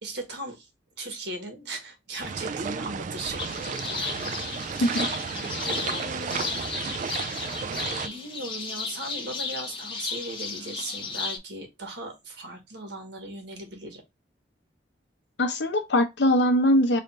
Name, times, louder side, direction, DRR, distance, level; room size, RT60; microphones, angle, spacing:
voice 1, 0.0-0.7 1.0-5.3 5.6-6.6 7.6-14.0, right 2 dB, 70° right, 1.3 m, -38 dB
sound 1, 2.2-8.1, right 6 dB, 45° right, 0.3 m, -33 dB
sound 2, 3.4-11.4, left 4 dB, 30° left, 0.9 m, -34 dB
voice 2, 4.8-5.1 15.4-17.0, left 1 dB, 75° left, 0.9 m, -22 dB
3.4 x 2.5 x 4.0 m
head